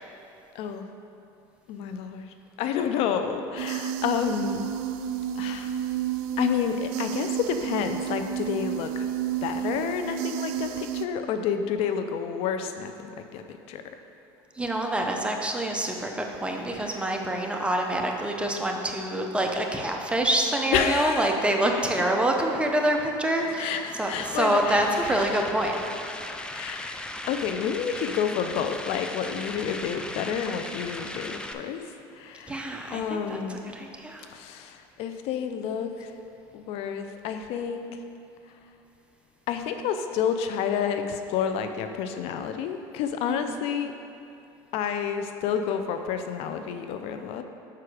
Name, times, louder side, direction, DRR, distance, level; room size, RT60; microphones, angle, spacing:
voice 1, 0.5-0.9 1.7-4.6 5.4-5.8 6.4-9.1 9.4-13.1 13.3-13.8 16.7-17.1 20.7-21.4 23.6-25.2 26.5-27.0 27.3-31.8 32.1-32.6 32.9-33.8 34.3-36.1 36.5-38.0 39.5-43.9 44.7-47.4, left 7 dB, 65° left, 7 dB, 0.5 m, -29 dB
sound 1, 3.6-11.1, right 10 dB, 75° right, 0.4 m, -31 dB
voice 2, 14.6-23.7 24.0-25.7 32.5-33.4 33.7-34.3 43.2-43.6, right 1 dB, 10° right, 2 dB, 0.8 m, -26 dB
sound 2, 23.4-31.5, left 1 dB, 10° left, 0.4 m, -38 dB
5.6 x 4.8 x 6.3 m, 2.6 s
supercardioid pair, 100°, 11 cm